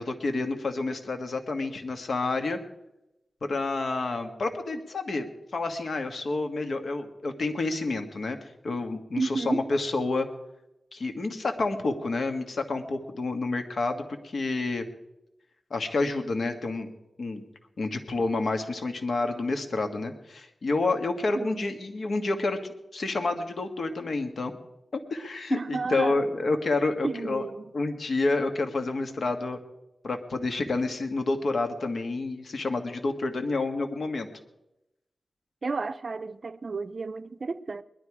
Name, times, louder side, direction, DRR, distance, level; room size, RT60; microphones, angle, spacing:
voice 1, 0.0-2.6 3.4-8.4 8.6-10.3 10.9-14.8 15.7-16.9 17.2-17.4 17.8-22.6 22.9-24.5 25.1-27.4 27.7-29.6 30.0-34.3, left 3 dB, 70° left, 1.6 m, -29 dB
voice 2, 9.2-9.7 21.4-21.7 25.5-26.2 27.0-27.6 35.6-37.8, right 4 dB, 55° right, 0.5 m, -31 dB
20.0 x 12.0 x 4.8 m
wide cardioid pair, 90°, 0 cm